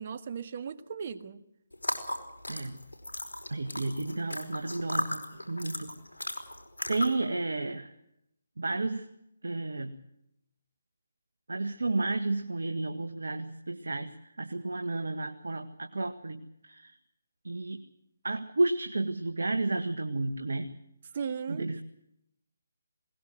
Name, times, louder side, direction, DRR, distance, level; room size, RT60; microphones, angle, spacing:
voice 1, 0.0-1.4 21.1-21.7, right 6 dB, 45° right, 12 dB, 1.7 m, -37 dB
sound 1, 1.7-7.3, left 1 dB, 85° left, 5.0 m, -36 dB
voice 2, 2.5-2.8 3.5-6.0 6.9-7.9 8.6-9.1 9.4-9.9 11.5-17.0 17.4-17.8 18.2-20.7 21.5-21.8, right 2 dB, 75° right, 7 dB, 1.7 m, -32 dB
21.0 x 19.5 x 7.7 m, 0.78 s
figure-of-eight pair, 150°, 0 cm